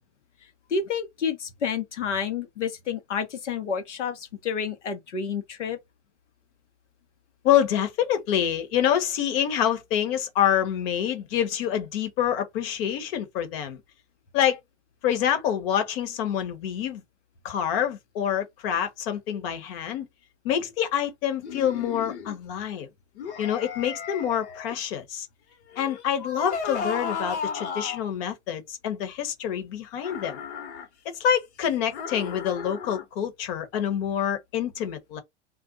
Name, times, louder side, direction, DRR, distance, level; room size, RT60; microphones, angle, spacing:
voice 1, 0.7-5.8, left 6 dB, 85° left, 1.1 m, -29 dB
voice 2, 7.4-13.8 14.3-14.6 15.0-17.0 17.4-20.1 20.4-22.9 23.4-25.3 25.8-30.4 31.0-35.2, left 9 dB, 55° left, 1.2 m, -26 dB
sound 1, 21.4-22.4 23.1-24.7 25.7-28.1 30.0-30.9 31.9-33.1, left 6 dB, 70° left, 1.3 m, -34 dB
2.5 x 2.1 x 3.9 m
hypercardioid pair, 115°, 35 cm